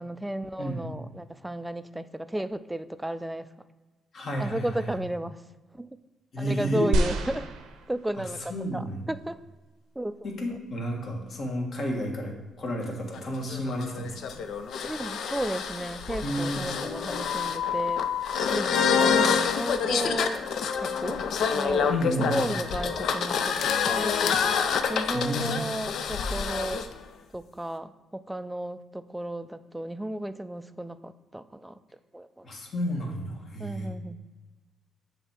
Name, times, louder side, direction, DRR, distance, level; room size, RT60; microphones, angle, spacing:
voice 1, 0.0-3.5 4.4-5.4 5.7-5.9 6.4-7.5 7.9-9.4 10.0-10.3 14.8-18.0 18.5-20.4 20.8-21.2 21.5-21.9 22.3-24.4 24.9-26.9 27.3-31.8 32.1-32.5 33.6-34.2, right 1 dB, 5° right, 13 dB, 0.3 m, -33 dB
voice 2, 4.1-4.9 6.3-6.9 8.2-8.3 8.5-9.0 10.2-14.4 16.2-16.6 21.9-22.3 25.1-25.6 32.4-33.9, equal, 55° left, 0 dB, 1.5 m, -31 dB
sound 1, 6.9-8.4 9.2-9.3, right 2 dB, 90° right, 0.7 m, -28 dB
sound 2, 13.1-26.9, left 6 dB, 70° left, 0.5 m, -27 dB
7.2 x 3.5 x 5.8 m, 1.2 s
cardioid pair, 90°, 0 cm